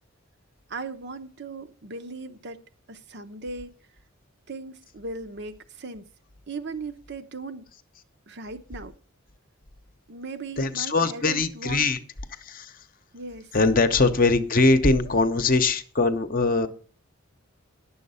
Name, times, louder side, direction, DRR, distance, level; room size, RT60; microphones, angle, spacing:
voice 1, 0.7-3.8 4.5-6.1 6.5-7.7 8.3-8.9 10.1-11.9 13.1-13.5, right 3 dB, 50° right, 0.8 m, -38 dB
voice 2, 10.6-12.0 12.4-12.7 13.5-16.7, left 3 dB, 40° left, 0.8 m, -22 dB
10.5 x 7.2 x 5.5 m
head